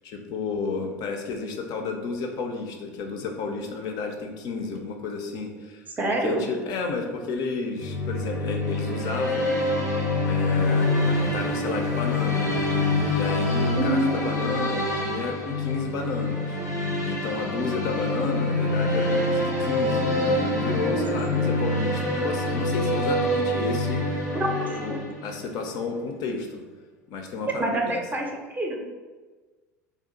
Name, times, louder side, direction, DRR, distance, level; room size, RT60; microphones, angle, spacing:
voice 1, 0.0-5.9 6.2-9.5 10.2-12.5 13.0-16.6 17.0-24.3 24.7-26.6 27.1-28.0, left 4 dB, 50° left, 3 dB, 0.4 m, -32 dB
voice 2, 6.0-6.5 13.8-14.5 20.9-21.0 21.3-21.4 24.3-25.0 27.6-28.8, right 1 dB, 20° right, 1 dB, 0.5 m, -27 dB
sound 1, 7.8-25.5, left 2 dB, 90° left, 0.6 m, -26 dB
sound 2, 10.5-15.4, equal, 85° right, 0.5 m, -38 dB
2.5 x 2.3 x 3.8 m, 1.3 s
figure-of-eight pair, 70°, 9 cm